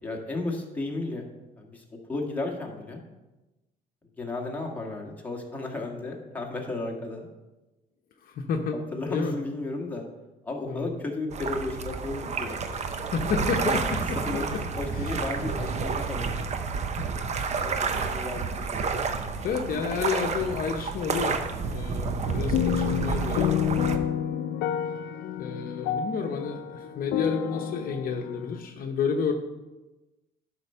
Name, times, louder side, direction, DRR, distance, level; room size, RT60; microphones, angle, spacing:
voice 1, 0.0-1.3 1.6-3.0 4.2-7.3 8.7-10.1 10.4-12.6 13.5-13.6 14.3-14.5 14.8-16.5 17.6-18.9 21.8-22.2, left 2 dB, 10° left, -1 dB, 1.8 m, -34 dB
voice 2, 8.2-8.8 9.1-9.3 10.7-10.9 12.9-14.2 14.9-15.2 17.0-17.1 17.9-18.2 19.4-21.4 21.7-23.7 25.4-29.3, left 5 dB, 60° left, 4 dB, 0.9 m, -30 dB
sound 1, 11.3-24.0, right 4 dB, 40° right, 0.8 m, -30 dB
sound 2, 22.3-28.6, left 9 dB, 80° left, 0.6 m, -29 dB
11.0 x 4.5 x 5.6 m, 1.1 s
cardioid pair, 110°, 17 cm